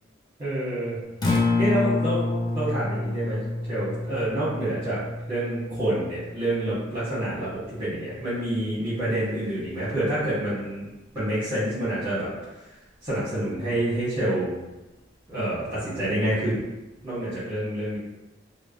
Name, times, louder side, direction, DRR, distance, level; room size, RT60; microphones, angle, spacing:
voice 1, 0.4-1.0 1.6-2.3 2.5-3.4 3.7-5.0 5.3-10.8 11.1-12.3 13.0-14.5 15.3-16.6 17.0-18.0, right 1 dB, 30° right, -12 dB, 1.0 m, -27 dB
Acoustic guitar, 1.1-9.3, left 2 dB, 20° left, 0.3 m, -29 dB
3.2 x 2.0 x 2.4 m, 1.0 s
head